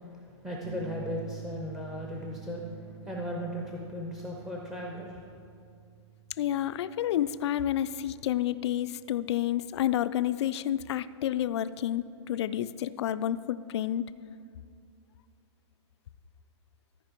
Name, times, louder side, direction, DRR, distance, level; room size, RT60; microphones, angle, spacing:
voice 1, 0.1-5.2, left 1 dB, ahead, -1 dB, 0.6 m, -37 dB
sound 1, 0.6-9.1, right 11 dB, 60° right, 0.9 m, -48 dB
voice 2, 6.4-14.0, left 11 dB, 65° left, 14 dB, 0.4 m, -30 dB
13.5 x 5.0 x 4.5 m, 2.4 s
hypercardioid pair, 145°, 15 cm